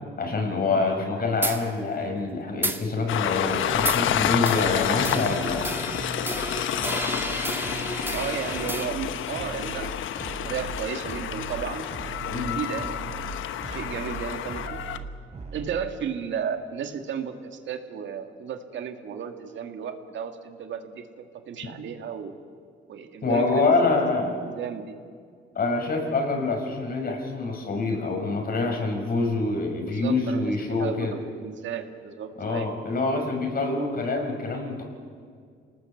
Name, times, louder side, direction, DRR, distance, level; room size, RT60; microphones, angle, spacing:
voice 1, 0.2-5.7 12.3-12.6 23.2-24.3 25.5-31.1 32.4-34.8, left 3 dB, 50° left, 3 dB, 6.1 m, -26 dB
sound 1, 1.4-1.6 2.6-2.8 3.9-4.1 4.5-8.9, right 1 dB, 10° right, 2.1 m, -32 dB
Train, 3.1-15.0, left 10 dB, 80° left, 1.1 m, -29 dB
sound 2, 3.7-3.9 4.2-4.8 5.0-5.6 5.9-6.5 6.7-7.3 7.6-8.2 8.5-9.1 9.3-9.9 10.2-10.8 11.0-11.6 11.9-15.8, right 4 dB, 35° right, 3.9 m, -39 dB
voice 2, 8.1-11.9 12.3-13.0 13.7-14.9 15.5-22.4 22.9-23.7 24.3-25.0 29.9-32.7, right 7 dB, 70° right, 6 dB, 2.2 m, -34 dB
27.5 x 19.0 x 8.0 m, 2.1 s
cardioid pair, 90°, 20 cm